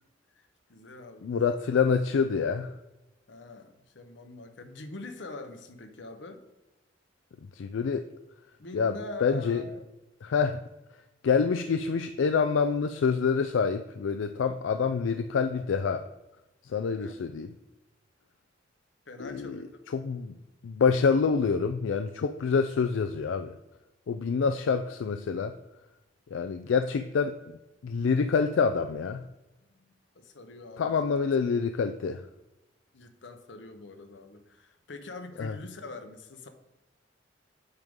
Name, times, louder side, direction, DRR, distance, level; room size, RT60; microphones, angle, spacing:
voice 1, 0.4-1.6 3.3-6.4 8.6-9.9 17.0-17.1 19.1-19.8 26.6-27.0 29.7-31.1 32.9-36.5, left 2 dB, 70° left, 7 dB, 0.9 m, -44 dB
voice 2, 1.2-2.7 7.6-8.0 8.7-9.6 10.2-10.6 11.2-16.1 16.7-17.5 19.2-20.4 20.6-23.5 24.1-25.6 26.3-29.2 30.8-32.2 35.4-35.5, left 5 dB, 85° left, 9 dB, 0.4 m, -27 dB
8.1 x 3.6 x 5.3 m, 1.0 s
head